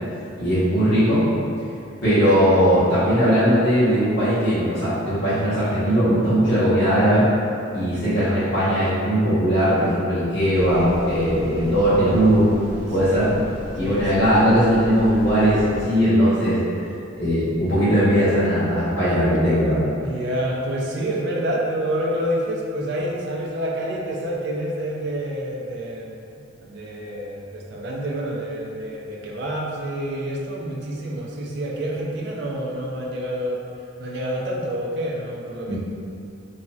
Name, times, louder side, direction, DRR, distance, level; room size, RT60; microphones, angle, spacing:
voice 1, 0.4-1.2 2.0-7.2 7.7-12.5 12.9-13.3 13.8-16.6 17.2-19.8 35.7-35.8, equal, 60° left, -14 dB, 1.4 m, -19 dB
sound 1, 10.5-15.8, equal, 10° right, 1.2 m, -36 dB
voice 2, 11.9-12.3 13.0-13.3 13.8-14.1 20.0-26.3 26.6-33.6 34.0-35.8, right 1 dB, 55° right, -3 dB, 0.4 m, -28 dB
3.1 x 2.7 x 2.3 m, 2.5 s
head